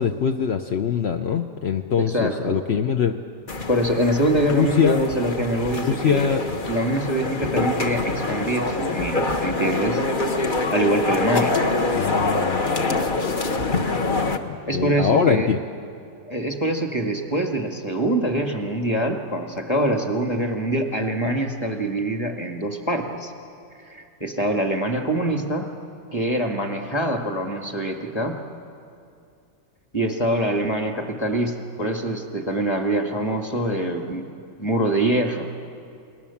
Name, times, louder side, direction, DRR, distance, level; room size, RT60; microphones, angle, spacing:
voice 1, 0.0-3.2 4.5-5.0 5.8-6.4 11.9-13.9 14.4-15.6, left 7 dB, 60° left, 5 dB, 0.7 m, -23 dB
voice 2, 2.0-2.6 3.7-6.4 6.7-10.0 10.7-11.6 14.7-15.5 16.3-23.3 23.8-25.7 26.1-28.4 29.9-34.3 34.6-35.5, right 1 dB, 15° left, 3 dB, 1.9 m, -24 dB
sound 1, 3.5-14.4, left 3 dB, 35° left, 1.0 m, -25 dB
29.0 x 20.5 x 7.2 m, 2.4 s
omnidirectional pair, 2.0 m